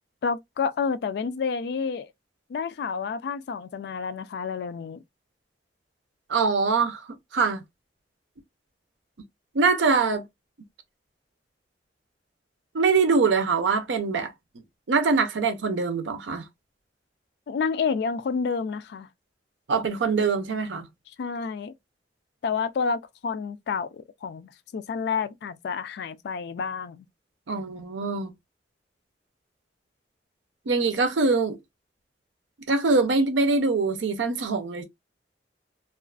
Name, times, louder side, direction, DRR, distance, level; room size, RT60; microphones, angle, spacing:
voice 1, 0.2-2.1 2.5-5.0 17.5-19.1 21.2-21.7 22.4-27.1, left 5 dB, 60° left, 0.3 m, -29 dB
voice 2, 6.3-7.0 7.3-7.6 9.5-10.2 12.7-14.3 14.9-16.4 19.7-20.9 27.5-28.3 30.7-31.6 32.7-34.8, right 4 dB, 85° right, 0.5 m, -23 dB
2.4 x 2.4 x 2.3 m
head